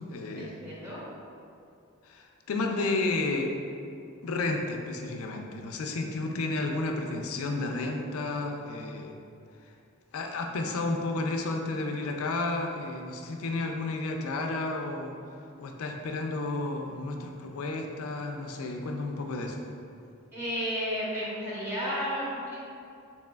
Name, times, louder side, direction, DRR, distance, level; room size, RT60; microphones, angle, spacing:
voice 1, 0.1-0.5 2.0-3.5 4.2-9.1 10.1-15.2 15.6-19.7, left 2 dB, 80° left, 3 dB, 0.4 m, -32 dB
voice 2, 0.6-1.0 20.3-22.6, equal, 10° right, -9 dB, 0.7 m, -32 dB
4.0 x 2.9 x 2.3 m, 2.5 s
head